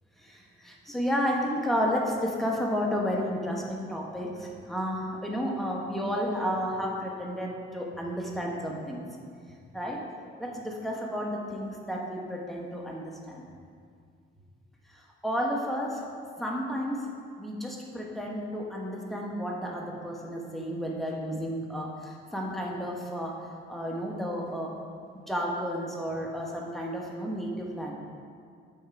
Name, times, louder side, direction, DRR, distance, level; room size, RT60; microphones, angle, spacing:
voice 1, 0.2-9.0 9.5-10.0 10.4-13.4 14.9-16.1 16.4-17.1 17.4-23.4 23.7-24.7 25.1-27.9, equal, ahead, -2 dB, 1.2 m, -32 dB
8.5 x 3.6 x 4.6 m, 2.2 s
cardioid pair, 90°, 20 cm